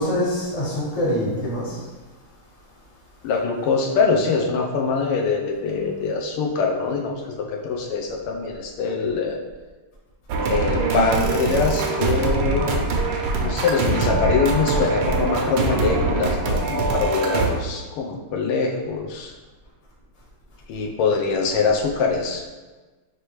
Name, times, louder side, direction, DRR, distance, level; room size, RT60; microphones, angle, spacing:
voice 1, 0.0-1.8 13.8-14.1, equal, 30° left, -6 dB, 0.7 m, -25 dB
voice 2, 3.2-9.4 10.4-12.8 13.4-19.3 20.7-22.5, left 4 dB, 90° left, 1 dB, 1.6 m, -23 dB
sound 1, 10.3-17.5, right 3 dB, 75° right, 1.3 m, -23 dB
5.0 x 3.0 x 3.0 m, 1.3 s
omnidirectional pair, 2.4 m